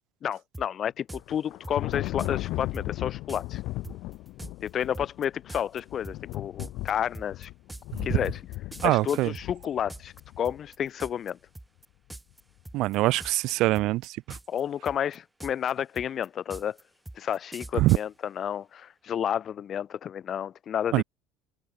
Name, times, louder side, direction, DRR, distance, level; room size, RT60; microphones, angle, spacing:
voice 1, 0.2-3.6 4.6-7.5 8.0-8.4 8.8-11.4 14.5-16.8 17.1-21.0, left 9 dB, 40° left, 1.3 m, -31 dB
sound 1, 0.5-0.7 1.1-1.2 1.6-2.3 2.7-2.9 3.3-3.4 3.8-10.2 10.5-11.3 11.6-11.9 12.1-12.4 12.7-13.5 13.8-14.6 14.9-18.0, right 1 dB, 5° right, 3.0 m, -42 dB
Thunder, 1.1-10.6, left 18 dB, 60° left, 1.7 m, -36 dB
voice 2, 8.8-9.3 12.7-14.4 17.7-18.0 20.9-21.0, right 18 dB, 60° right, 1.5 m, -24 dB
supercardioid pair, 120°, 0 cm